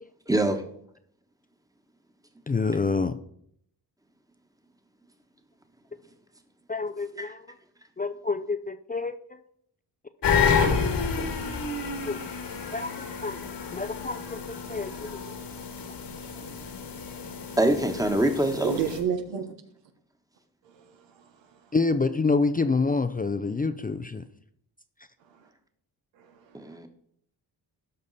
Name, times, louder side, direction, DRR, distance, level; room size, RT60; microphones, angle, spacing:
voice 1, 0.3-0.6 7.2-7.3 17.6-18.7 26.5-26.9, right 1 dB, 10° right, 1.3 m, -24 dB
voice 2, 2.5-3.2 6.7-7.5 8.0-9.4 12.0-12.2 12.7-13.4 13.7-15.3 21.7-24.2, left 4 dB, 20° left, 0.5 m, -28 dB
sound 1, 10.2-19.0, left 5 dB, 70° left, 1.9 m, -29 dB
voice 3, 18.6-19.5 20.6-21.6 25.3-25.5 26.2-26.7, right 7 dB, 85° right, 1.3 m, -32 dB
12.0 x 5.3 x 4.1 m
cardioid pair, 70°, 43 cm